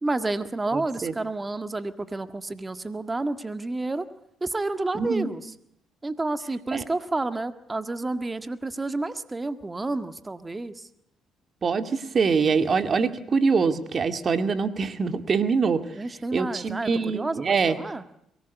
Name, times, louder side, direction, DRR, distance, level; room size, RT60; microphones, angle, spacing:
voice 1, 0.0-4.1 4.4-5.4 6.0-10.9 15.9-18.0, right 2 dB, 25° right, 10 dB, 1.7 m, -30 dB
voice 2, 0.7-1.1 4.9-5.3 6.7-6.8 11.6-15.8 16.3-17.8, right 5 dB, 45° right, 9 dB, 2.1 m, -24 dB
23.0 x 19.0 x 8.3 m, 0.76 s
supercardioid pair, 60°, 0 cm